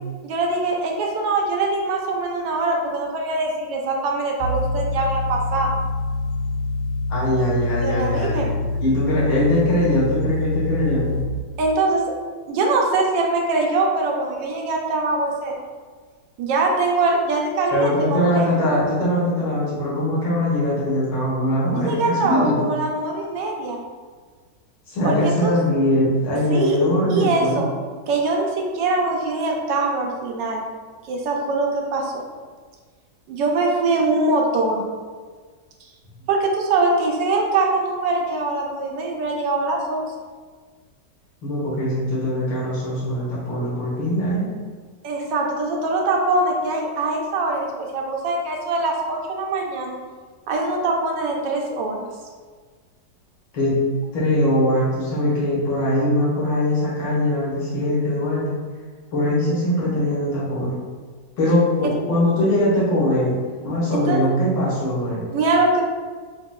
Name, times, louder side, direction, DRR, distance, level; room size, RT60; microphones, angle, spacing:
voice 1, 0.2-5.7 7.8-8.5 11.6-12.0 12.5-15.6 16.4-18.5 21.8-23.8 25.0-25.5 26.5-26.8 27.1-27.7 28.1-30.6 31.1-32.2 33.3-34.8 36.3-40.1 45.0-50.0 50.5-52.1 63.9-64.2 65.3-65.8, right 3 dB, 85° right, 0 dB, 1.3 m, -22 dB
sound 1, 4.4-11.2, left 2 dB, 60° left, 0.5 m, -25 dB
voice 2, 7.1-8.5 8.8-11.1 17.7-22.6 24.9-27.6 41.4-44.5 53.5-53.8 54.1-58.5 59.1-60.8 61.4-63.3 63.6-65.3, left 1 dB, 85° left, -7 dB, 2.0 m, -21 dB
4.9 x 2.8 x 2.2 m, 1.5 s
omnidirectional pair, 2.0 m